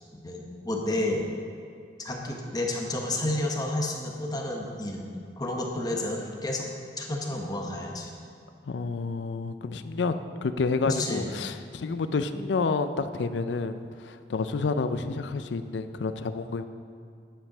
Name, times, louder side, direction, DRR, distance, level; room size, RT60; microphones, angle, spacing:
voice 1, 0.1-1.3 2.0-5.1 5.4-6.7 7.0-8.1 10.9-11.3, left 1 dB, 25° left, 0 dB, 1.0 m, -30 dB
voice 2, 8.7-10.2 10.4-16.6, left 4 dB, 90° left, 10 dB, 0.5 m, -29 dB
10.0 x 5.4 x 5.9 m, 2.4 s
head